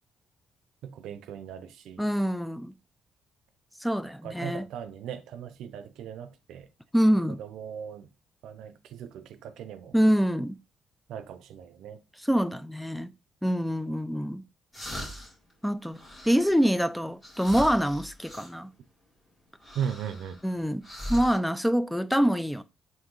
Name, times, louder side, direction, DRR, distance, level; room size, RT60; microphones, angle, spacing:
voice 1, 0.8-2.1 4.2-6.7 7.4-8.1 8.4-10.0 11.1-12.0 19.7-20.4, right 8 dB, 80° right, 0.5 m, -38 dB
voice 2, 2.0-2.7 3.8-4.7 6.9-7.4 9.9-10.6 12.3-13.1 13.4-14.4 15.6-18.7 20.4-22.6, equal, ahead, 0.3 m, -25 dB
sound 1, 14.7-15.5 15.9-16.6 17.2-18.5 19.6-20.5 20.8-21.4, equal, 20° left, 2.2 m, -39 dB
3.7 x 2.6 x 3.8 m
cardioid pair, 90°, 0 cm